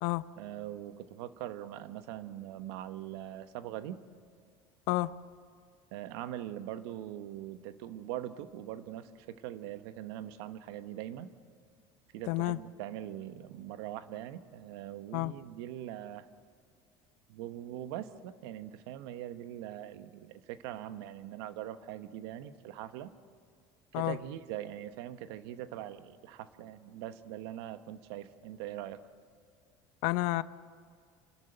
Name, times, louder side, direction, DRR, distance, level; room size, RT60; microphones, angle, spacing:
voice 1, 0.4-4.0 5.9-11.3 12.1-16.3 17.3-23.1 23.9-29.0, right 12 dB, 80° right, 12 dB, 1.1 m, -42 dB
voice 2, 12.3-12.6 15.1-15.3 23.9-24.2 30.0-30.4, left 20 dB, 75° left, 16 dB, 0.7 m, -30 dB
28.5 x 12.5 x 9.0 m, 2.3 s
supercardioid pair, 90°, 13 cm